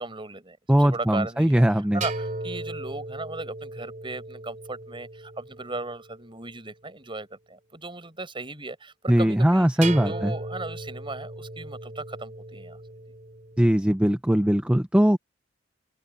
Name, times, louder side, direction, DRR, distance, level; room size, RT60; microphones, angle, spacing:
voice 1, 0.0-9.7 10.0-12.8, right 2 dB, 25° right, 7.5 m, -37 dB
voice 2, 0.7-2.0 9.1-10.3 13.6-15.2, equal, 5° right, 0.5 m, -20 dB
sound 1, 2.0-6.3 9.8-13.7, right 2 dB, 45° right, 2.9 m, -37 dB
open air
head